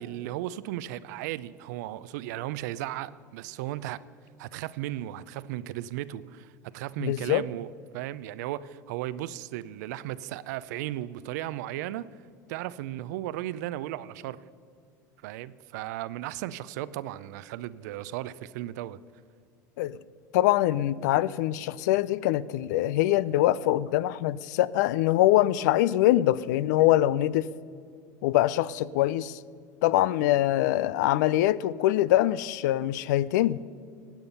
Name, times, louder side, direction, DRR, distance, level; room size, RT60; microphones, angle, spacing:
voice 1, 0.0-4.0 4.4-12.1 12.5-14.4 15.2-19.0, right 14 dB, 70° right, 0.5 m, -35 dB
voice 2, 7.0-7.4 19.8-20.0 20.3-27.5 28.2-29.4 29.8-33.6, left 14 dB, 75° left, 0.4 m, -24 dB
16.0 x 9.1 x 5.5 m
hypercardioid pair, 85°, 10 cm